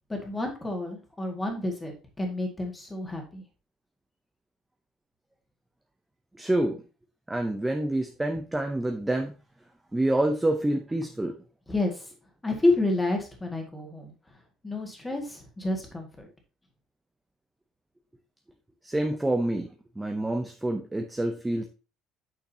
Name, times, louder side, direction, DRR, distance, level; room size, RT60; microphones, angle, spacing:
voice 1, 0.1-3.4 11.7-12.0 12.4-14.1 14.6-16.3, left 2 dB, 10° left, 3 dB, 1.9 m, -29 dB
voice 2, 6.4-6.8 7.3-9.3 9.9-11.4 18.8-19.7 20.0-21.7, right 1 dB, 5° right, 4 dB, 0.7 m, -27 dB
8.6 x 6.4 x 2.8 m, 0.33 s
cardioid pair, 165°, 0 cm